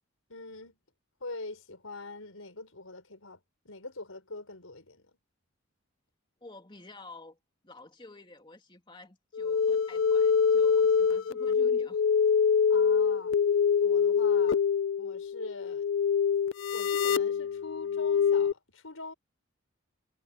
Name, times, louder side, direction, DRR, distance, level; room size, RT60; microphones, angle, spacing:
voice 1, 0.3-0.8 1.2-3.4 3.7-5.2 12.7-13.4 13.8-14.6 15.0-15.9 16.3-16.4 16.7-19.1, left 2 dB, 85° left, 5.5 m, -43 dB
voice 2, 6.4-7.4 7.6-12.0, left 2 dB, 25° left, 2.9 m, -50 dB
sound 1, 9.3-18.5, left 6 dB, 70° left, 0.5 m, -25 dB
head